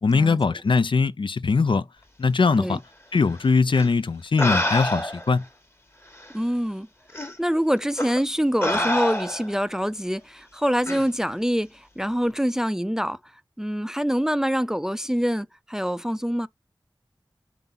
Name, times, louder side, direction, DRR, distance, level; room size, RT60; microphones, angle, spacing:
voice 1, 0.0-1.8 2.2-2.8 3.1-5.4, left 4 dB, 75° left, 0.4 m, -21 dB
sound 1, 3.7-3.9 4.4-5.3 6.2-6.3 7.1-7.3 8.0-8.2 8.6-9.6 10.9-11.1, left 1 dB, 30° left, 1.3 m, -26 dB
voice 2, 6.3-6.9 7.1-13.2 13.6-16.5, equal, 5° right, 0.4 m, -25 dB
4.5 x 3.9 x 5.4 m
wide cardioid pair, 60°, 9 cm